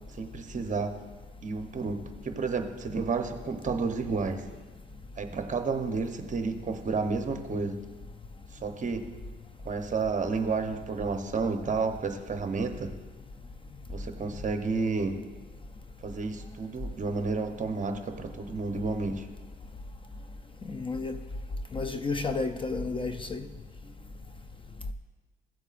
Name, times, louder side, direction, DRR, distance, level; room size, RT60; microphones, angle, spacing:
voice 1, 0.2-0.9 1.4-4.4 5.2-7.8 8.6-9.0 9.6-12.9 13.9-15.2 16.0-19.3, right 4 dB, 40° right, 6 dB, 0.9 m, -31 dB
voice 2, 20.6-21.2 21.7-23.5, left 3 dB, 25° left, 9 dB, 0.5 m, -31 dB
15.5 x 7.9 x 2.5 m, 1.3 s
cardioid pair, 90°, 20 cm